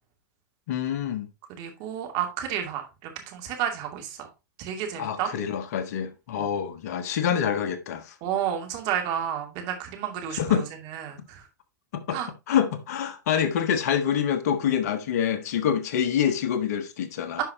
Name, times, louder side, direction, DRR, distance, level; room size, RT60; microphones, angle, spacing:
voice 1, 0.7-1.3 5.0-8.1 10.4-10.7 11.9-12.2 12.5-17.4, left 8 dB, 55° left, 1.2 m, -26 dB
voice 2, 1.5-4.3 4.6-5.3 6.4-6.5 8.2-11.5 12.1-12.3 17.4-17.5, right 9 dB, 45° right, 2.5 m, -31 dB
10.5 x 5.5 x 2.8 m
figure-of-eight pair, 100°, 10 cm